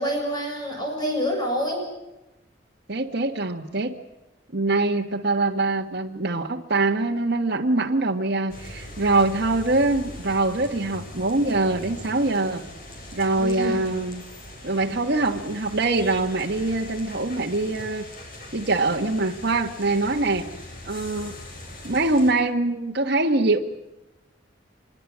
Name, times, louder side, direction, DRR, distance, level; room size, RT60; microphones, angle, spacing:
voice 1, 0.0-1.9 13.4-14.0, equal, 25° left, 1 dB, 7.6 m, -27 dB
voice 2, 2.9-3.9 4.5-12.6 13.1-14.2 14.6-18.0 18.5-20.5 20.8-21.4 21.8-23.6, right 2 dB, 60° right, 0 dB, 1.6 m, -23 dB
sound 1, 8.5-22.3, left 1 dB, 50° left, 7.1 m, -41 dB
25.5 x 23.0 x 7.5 m, 0.99 s
head